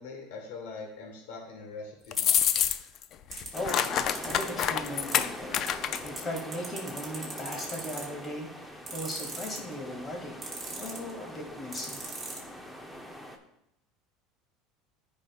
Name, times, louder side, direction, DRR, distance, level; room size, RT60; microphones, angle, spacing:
voice 1, 0.0-2.4, left 4 dB, 85° left, 1 dB, 1.5 m, -42 dB
sound 1, 2.1-3.0 3.3-6.2, left 9 dB, 45° left, 0.4 m, -27 dB
sound 2, 2.2-2.6 3.3-4.4 5.1-5.2 5.7-5.8 5.9-8.2 8.9-9.7 10.4-11.1 11.7-12.4, right 4 dB, 15° right, 2.3 m, -38 dB
voice 2, 3.5-10.4 10.7-12.1, left 1 dB, 25° left, 0 dB, 2.3 m, -38 dB
sound 3, 3.5-13.4, equal, 5° left, 0.8 m, -43 dB
13.5 x 5.4 x 2.4 m, 0.83 s
supercardioid pair, 130°, 0 cm